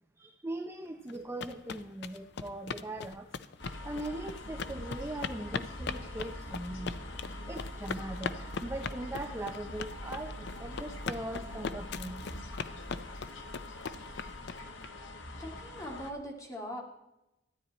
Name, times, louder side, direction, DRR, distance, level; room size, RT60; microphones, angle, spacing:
voice 1, 0.2-3.3 3.8-7.0 7.5-12.2, right 1 dB, 15° right, 4 dB, 0.6 m, -40 dB
sound 1, 1.1-14.9, left 5 dB, 65° left, 0.5 m, -39 dB
sound 2, 3.6-16.1, left 1 dB, 90° left, 1.3 m, -43 dB
voice 2, 15.4-16.8, equal, 20° left, 0 dB, 2.1 m, -41 dB
13.0 x 9.7 x 4.2 m, 0.91 s
head